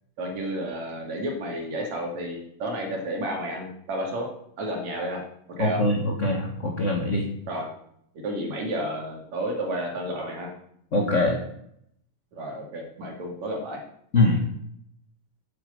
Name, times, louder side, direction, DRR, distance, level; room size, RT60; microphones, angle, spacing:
voice 1, 0.2-4.3 4.6-5.2 5.6-5.8 7.5-7.7 8.2-10.5 12.3-13.8, right 1 dB, 70° right, 0 dB, 4.0 m, -31 dB
voice 2, 5.6-7.2 10.9-11.4 14.1-14.4, left 2 dB, 30° left, 1 dB, 1.5 m, -23 dB
9.9 x 9.0 x 8.1 m, 0.72 s
omnidirectional pair, 3.3 m